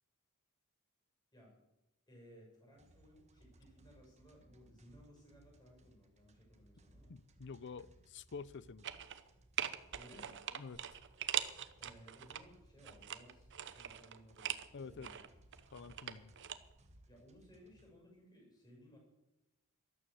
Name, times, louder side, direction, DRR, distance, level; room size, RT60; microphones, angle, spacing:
voice 1, 2.1-7.1 9.9-10.4 11.8-15.2 17.1-19.0, equal, 20° left, 6.5 m, -60 dB
sound 1, 2.7-17.9, right 1 dB, 30° right, 1.5 m, -65 dB
voice 2, 7.1-8.9 10.5-10.8 14.7-15.1 15.7-16.3, left 5 dB, 55° left, 0.6 m, -48 dB
sound 2, 8.8-9.3 9.6-12.4 12.8-14.7 15.0-16.6 16.8-16.9, right 10 dB, 55° right, 0.9 m, -41 dB
13.5 x 12.5 x 7.0 m
head